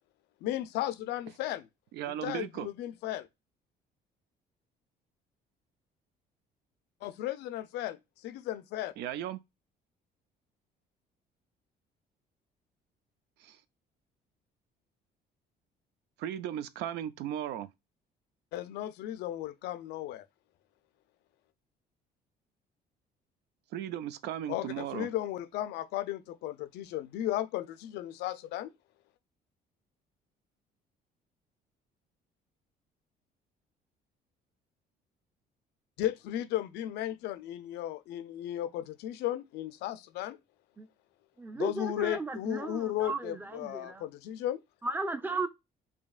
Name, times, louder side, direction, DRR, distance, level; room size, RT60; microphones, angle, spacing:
voice 1, 0.4-1.7 2.2-3.3 7.0-8.9 18.5-20.2 24.5-28.7 36.0-40.4 41.6-44.6, left 13 dB, 80° left, 0.5 m, -35 dB
voice 2, 1.9-2.7 9.0-9.4 13.4-13.6 16.2-17.7 23.7-25.1, right 11 dB, 80° right, 0.5 m, -36 dB
voice 3, 41.4-44.0 44.8-45.5, right 3 dB, 10° right, 0.5 m, -35 dB
5.0 x 2.7 x 2.3 m
cardioid pair, 110°, 17 cm